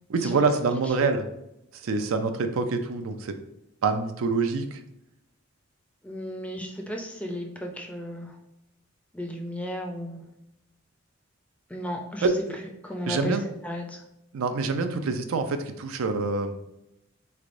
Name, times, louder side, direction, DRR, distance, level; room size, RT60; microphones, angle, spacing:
voice 1, 0.1-1.3 1.7-3.3 3.8-4.8 12.2-12.3 13.1-13.4 14.3-16.6, right 4 dB, 85° right, 8 dB, 0.4 m, -26 dB
voice 2, 6.0-8.3 9.1-10.2 11.7-12.3 12.8-13.4 13.6-14.0, equal, 5° left, 1 dB, 0.4 m, -34 dB
3.6 x 3.3 x 2.5 m, 0.86 s
head